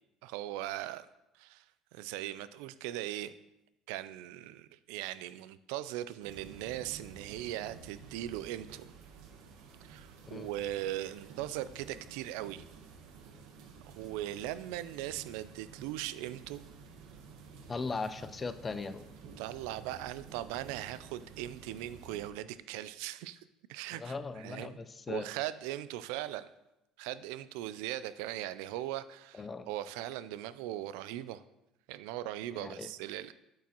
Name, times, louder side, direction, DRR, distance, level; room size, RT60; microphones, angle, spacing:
voice 1, 0.2-1.1 1.4-1.6 1.9-3.3 3.9-8.9 9.9-12.6 13.9-16.6 19.4-23.4 23.7-24.8 25.1-26.5 27.0-31.4 31.9-33.3, right 13 dB, 90° right, 15 dB, 0.3 m, -39 dB
sound 1, 6.2-22.3, right 5 dB, 70° right, 0.9 m, -52 dB
voice 2, 17.7-19.0 23.9-25.3 29.3-29.7 32.5-32.9, left 4 dB, 20° left, 12 dB, 0.4 m, -38 dB
8.4 x 6.0 x 2.9 m, 0.87 s
cardioid pair, 155°, 0 cm